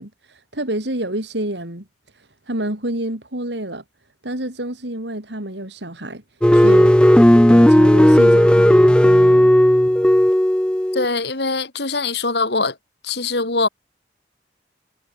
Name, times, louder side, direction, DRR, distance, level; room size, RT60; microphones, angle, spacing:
voice 1, 0.0-1.8 2.1-3.8 4.2-6.2 6.5-7.0 7.5-9.5, right 1 dB, 75° right, 4.5 m, -28 dB
sound 1, 6.4-11.1, equal, 5° left, 0.4 m, -13 dB
voice 2, 10.9-12.8 13.0-13.7, left 3 dB, 65° left, 2.6 m, -22 dB
head